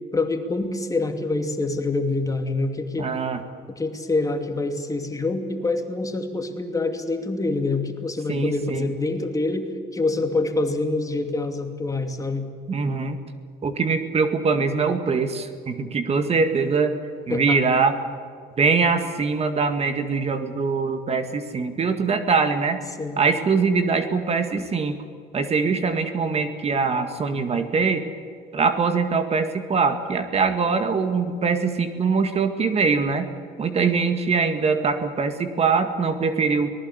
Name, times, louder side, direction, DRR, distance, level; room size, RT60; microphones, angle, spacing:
voice 1, 0.1-3.1 3.8-12.5 17.3-17.6 23.0-23.2, left 2 dB, 20° left, 5 dB, 2.6 m, -26 dB
voice 2, 3.0-3.4 8.3-8.9 12.7-13.2 13.6-17.0 17.3-18.0 18.6-22.8 23.2-25.0 25.3-28.0 28.5-33.3 33.6-36.7, right 4 dB, 35° right, 8 dB, 2.0 m, -22 dB
24.5 x 19.5 x 8.1 m, 2.2 s
cardioid pair, 110°, 17 cm